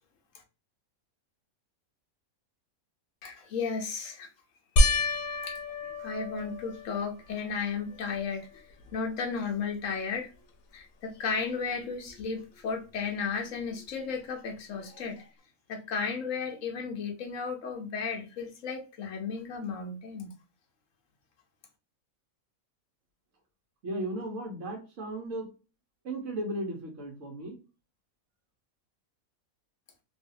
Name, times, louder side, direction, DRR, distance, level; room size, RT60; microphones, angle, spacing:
voice 1, 3.2-4.3 5.4-8.7 8.9-10.3 10.7-15.3 15.7-20.3, left 5 dB, 70° left, 1.2 m, -34 dB
sound 1, 4.8-7.4 8.0-8.5 8.9-9.0 12.2-12.3, left 1 dB, 85° left, 1.1 m, -28 dB
voice 2, 23.8-25.5 26.0-27.6, right 1 dB, 60° right, 1.4 m, -35 dB
3.1 x 2.7 x 2.6 m
omnidirectional pair, 1.5 m